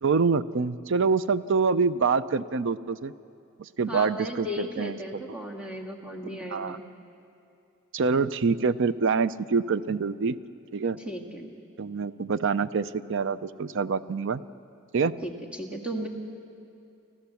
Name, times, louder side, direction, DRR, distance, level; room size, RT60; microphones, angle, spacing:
voice 1, 0.0-3.1 3.6-5.0 6.5-6.8 7.9-10.4 10.7-11.0 11.8-14.4 14.9-15.2, right 5 dB, 60° right, 15 dB, 0.5 m, -26 dB
voice 2, 3.9-6.8 11.1-11.5 15.2-16.1, equal, 5° right, -1 dB, 1.9 m, -35 dB
27.5 x 14.0 x 7.1 m, 2.5 s
head